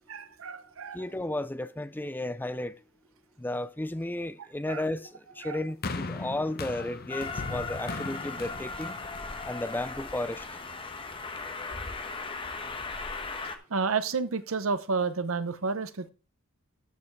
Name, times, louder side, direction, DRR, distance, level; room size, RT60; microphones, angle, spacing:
voice 1, 0.1-1.0 4.7-4.8 5.4-5.6 13.7-16.1, right 4 dB, 75° right, 0.8 m, -30 dB
voice 2, 0.9-2.8 3.4-9.0 9.5-10.5, left 1 dB, 10° left, 0.5 m, -33 dB
sound 1, 5.8-10.2 11.0-11.1, left 3 dB, 50° left, 0.9 m, -38 dB
Train, 7.1-13.6, left 3 dB, 25° left, 1.2 m, -37 dB
13.0 x 5.5 x 4.6 m
head